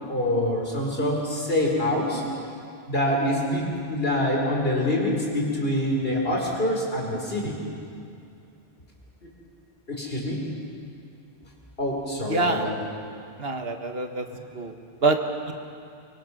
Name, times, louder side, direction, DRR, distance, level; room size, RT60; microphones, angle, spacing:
voice 1, 0.1-2.2 2.9-7.6 9.2-9.3 9.9-10.4 11.8-12.7, left 1 dB, 65° left, -1 dB, 4.7 m, -25 dB
voice 2, 12.2-12.7 13.4-14.2 14.5-14.7 15.0-15.2 15.5-15.6, right 3 dB, 70° right, 5 dB, 1.7 m, -25 dB
24.5 x 23.5 x 6.3 m, 2.5 s
omnidirectional pair, 1.1 m